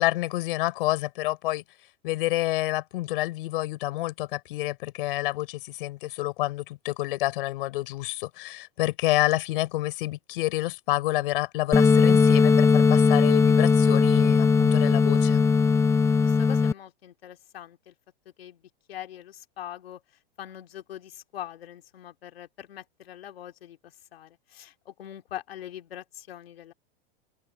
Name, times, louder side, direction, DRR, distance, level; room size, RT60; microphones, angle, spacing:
voice 1, 0.0-1.6 2.0-15.5, left 17 dB, 65° left, 4.5 m, -28 dB
sound 1, 11.7-16.7, left 5 dB, 10° left, 0.6 m, -19 dB
voice 2, 16.2-17.9 18.4-18.6 18.9-20.0 20.4-26.7, left 11 dB, 85° left, 2.9 m, -42 dB
open air
supercardioid pair, 135°, 29 cm